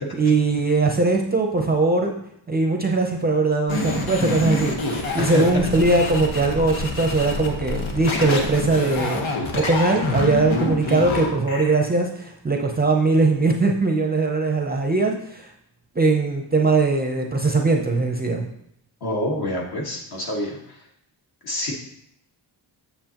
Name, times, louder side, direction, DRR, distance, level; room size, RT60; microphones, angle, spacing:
voice 1, 0.1-2.2 2.5-9.3 9.5-15.5 15.9-18.5, right 3 dB, 20° right, 1 dB, 0.5 m, -20 dB
sound 1, 3.7-11.7, left 2 dB, 85° left, 1.3 m, -27 dB
voice 2, 19.0-20.8 21.4-21.7, left 1 dB, 55° left, -1 dB, 1.6 m, -27 dB
7.8 x 6.8 x 2.9 m, 0.74 s
wide cardioid pair, 165°, 46 cm